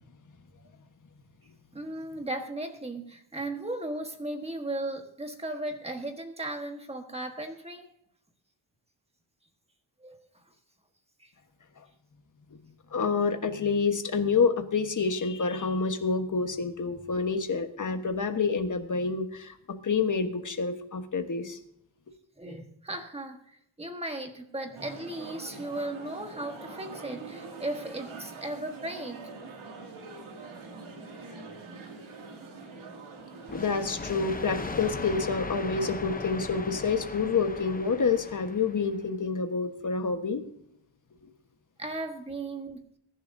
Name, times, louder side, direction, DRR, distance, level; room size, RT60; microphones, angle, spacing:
voice 1, 1.7-7.9 10.0-10.3 11.2-11.3 22.4-29.3 41.8-42.8, right 1 dB, 15° right, 4 dB, 1.4 m, -36 dB
voice 2, 12.9-19.5 19.8-21.6 33.5-40.4, left 5 dB, 40° left, 6 dB, 1.3 m, -28 dB
crowded bistro, 24.7-34.9, right 3 dB, 85° right, 2.5 m, -44 dB
sound 1, 33.5-39.0, left 3 dB, 20° left, 0.7 m, -38 dB
23.0 x 11.0 x 2.7 m, 0.74 s
wide cardioid pair, 180°, 47 cm